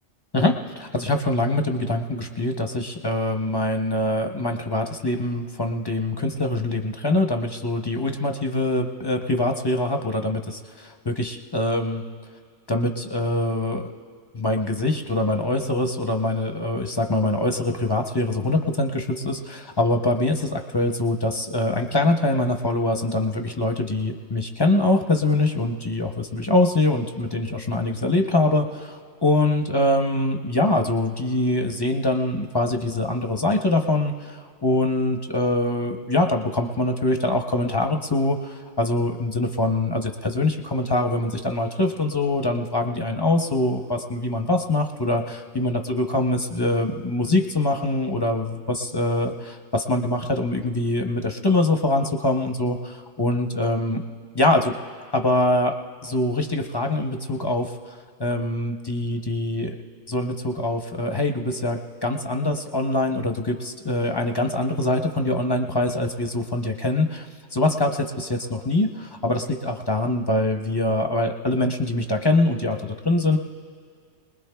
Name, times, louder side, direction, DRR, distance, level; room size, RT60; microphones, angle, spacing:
voice 1, 0.3-12.0 12.7-13.8 14.3-54.0 54.3-54.7 55.1-55.8 56.0-59.8 60.1-73.4, left 2 dB, 25° left, 3 dB, 0.6 m, -24 dB
25.0 x 20.5 x 2.3 m, 2.1 s
omnidirectional pair, 1.2 m